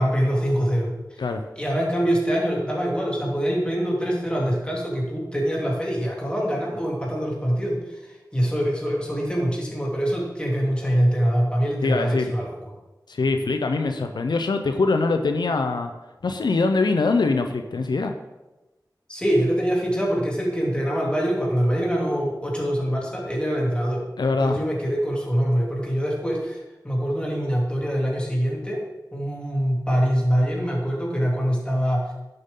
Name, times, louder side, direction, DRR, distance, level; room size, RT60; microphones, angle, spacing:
voice 1, 0.0-1.2 1.6-12.7 19.1-24.0 24.4-26.6 26.8-28.8 29.1-32.1, equal, 15° left, -3 dB, 3.0 m, -24 dB
voice 2, 11.8-12.3 13.1-15.9 16.2-18.1 24.2-24.6, left 3 dB, 85° left, 6 dB, 0.6 m, -23 dB
11.0 x 7.8 x 3.8 m, 1.1 s
wide cardioid pair, 60°, 7 cm